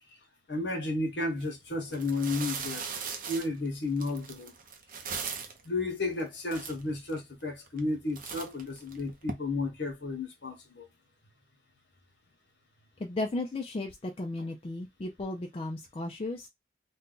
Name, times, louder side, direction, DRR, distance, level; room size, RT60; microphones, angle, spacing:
voice 1, 0.5-2.8 3.3-4.5 5.6-10.9, left 2 dB, 65° left, 0.9 m, -32 dB
sound 1, 1.3-1.5 1.9-5.7 6.2-6.3 6.5-7.2 7.7-7.9 8.2-9.3, right 5 dB, 45° right, 0.6 m, -38 dB
voice 2, 13.0-16.5, left 2 dB, 30° left, 0.4 m, -35 dB
2.6 x 2.2 x 3.7 m
head